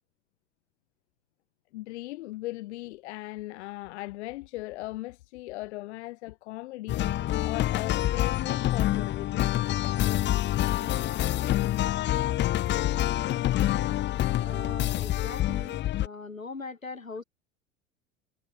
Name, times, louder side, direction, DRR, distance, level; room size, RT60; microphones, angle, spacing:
voice 1, 1.7-7.1 7.4-9.5, left 18 dB, 60° left, 0.9 m, -38 dB
sound 1, 6.9-16.1, left 14 dB, 30° left, 0.8 m, -27 dB
voice 2, 14.4-17.2, left 4 dB, 85° left, 4.4 m, -40 dB
figure-of-eight pair, 80°, 39 cm